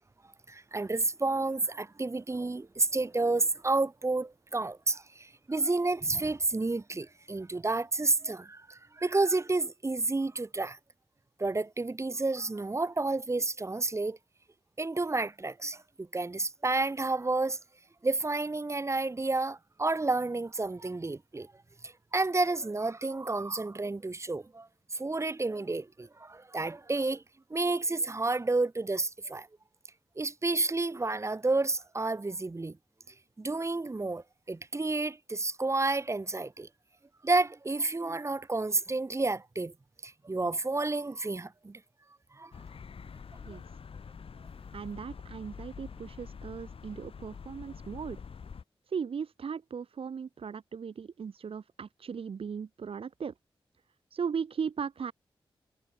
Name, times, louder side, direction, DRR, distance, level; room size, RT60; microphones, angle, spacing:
voice 1, 0.5-10.8 11.4-14.2 14.8-17.6 18.0-21.5 21.8-27.2 27.5-29.5 30.2-32.8 33.4-36.7 37.2-39.7 40.0-41.8 42.3-42.5, right 3 dB, 30° right, 1.3 m, -30 dB
sound 1, 42.5-48.6, left 6 dB, 70° left, 4.6 m, -46 dB
voice 2, 44.7-48.2 48.9-53.3 54.1-55.1, right 6 dB, 70° right, 1.6 m, -37 dB
cardioid pair, 70°, 10 cm